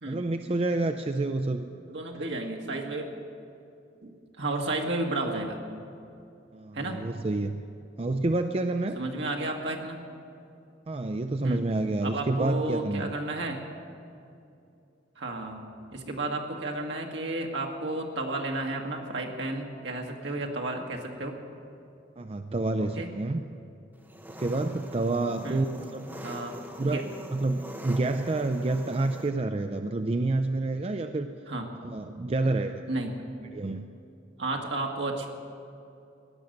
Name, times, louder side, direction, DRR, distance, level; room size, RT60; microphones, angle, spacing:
voice 1, 0.1-1.7 6.5-7.6 8.0-9.0 10.9-13.1 22.2-23.4 24.3-25.7 25.9-26.1 26.8-31.3 31.8-32.8 33.5-33.9, right 2 dB, 30° right, 7 dB, 0.4 m, -28 dB
voice 2, 1.9-3.1 4.0-5.6 6.7-7.0 9.0-10.0 11.4-11.6 12.0-13.6 15.2-15.6 15.9-21.4 22.8-23.1 25.4-25.7 26.2-27.0 31.5-31.7 32.4-32.5 32.9-33.2 34.4-35.3, right 2 dB, 70° right, 1 dB, 1.7 m, -32 dB
Engine, 24.0-29.3, equal, 10° right, 1.0 m, -43 dB
17.0 x 10.5 x 6.5 m, 2.6 s
head